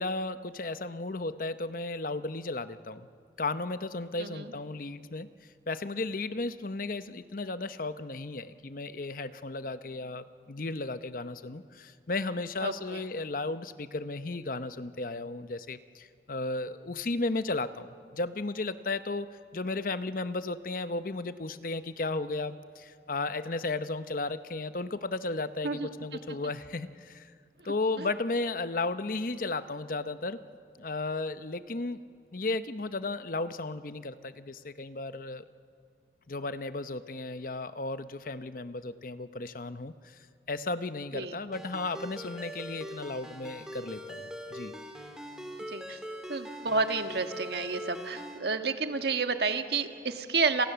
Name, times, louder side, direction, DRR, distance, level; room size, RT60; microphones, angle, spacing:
voice 1, 0.0-3.1 3.4-5.3 5.7-27.3 27.6-30.4 30.8-32.0 32.3-35.4 36.3-44.7, left 3 dB, 50° left, 12 dB, 0.8 m, -34 dB
voice 2, 4.2-4.5 12.6-13.0 25.6-25.9 28.0-28.1 41.1-41.3 45.7-46.0 46.3-50.6, right 4 dB, 60° right, 7 dB, 1.6 m, -30 dB
Ringtone, 41.5-48.4, equal, 5° right, 2.4 m, -42 dB
29.5 x 27.5 x 6.9 m, 2.3 s
head